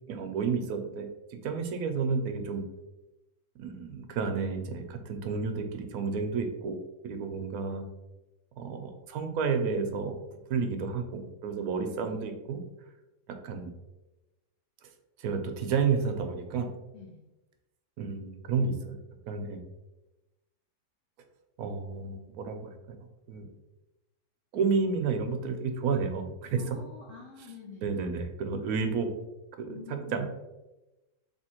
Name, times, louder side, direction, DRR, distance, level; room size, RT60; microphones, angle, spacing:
voice 1, 0.1-2.6 3.6-6.8 7.0-7.8 8.6-10.2 10.5-12.6 13.4-13.7 15.2-16.7 18.0-19.0 19.3-19.6 21.6-22.7 23.3-23.5 24.5-26.8 27.8-29.1 29.6-30.3, right 5 dB, 70° right, 6 dB, 1.0 m, -31 dB
voice 2, 16.9-17.3 26.6-28.1 29.7-30.3, left 5 dB, 65° left, -1 dB, 0.9 m, -47 dB
3.4 x 2.9 x 4.3 m, 0.99 s
omnidirectional pair, 1.8 m